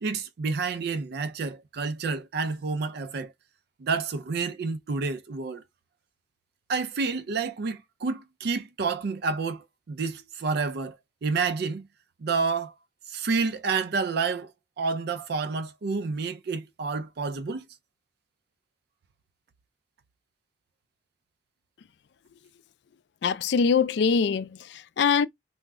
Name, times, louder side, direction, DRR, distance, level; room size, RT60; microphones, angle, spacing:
voice 1, 0.0-3.3 3.8-5.6 6.7-11.0 11.2-11.9 12.2-12.7 13.1-14.5 14.8-17.6, right 4 dB, 60° right, 0.4 m, -29 dB
voice 2, 23.2-25.3, left 6 dB, 65° left, 0.4 m, -23 dB
2.2 x 2.0 x 3.5 m
head